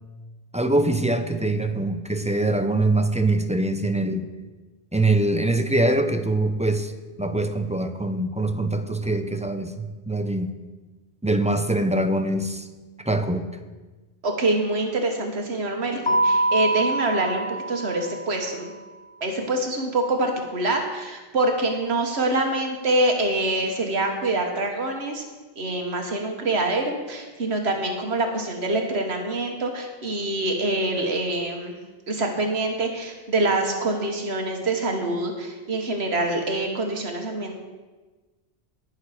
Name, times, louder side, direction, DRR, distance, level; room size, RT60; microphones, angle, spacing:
voice 1, 0.5-4.2 4.9-6.9 7.2-10.5 11.2-12.7 13.0-13.5, right 2 dB, 10° right, 7 dB, 0.6 m, -23 dB
voice 2, 14.2-18.7 19.2-25.2 25.6-31.8 32.1-37.6, right 2 dB, 80° right, 3 dB, 1.5 m, -25 dB
Keyboard (musical), 16.1-18.6, right 1 dB, 30° left, 0.8 m, -25 dB
19.0 x 6.5 x 4.9 m, 1.3 s
omnidirectional pair, 1.1 m